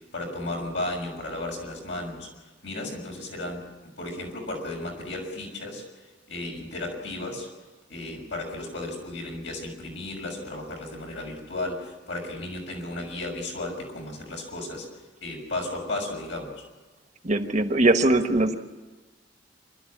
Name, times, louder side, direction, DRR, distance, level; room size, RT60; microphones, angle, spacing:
voice 1, 0.1-2.3 2.6-3.7 4.0-5.8 6.3-7.5 7.9-14.9 15.2-16.6, left 2 dB, 80° left, 1 dB, 6.2 m, -34 dB
voice 2, 17.2-18.6, right 2 dB, 40° right, 7 dB, 1.3 m, -21 dB
27.5 x 12.5 x 8.6 m, 1.3 s
head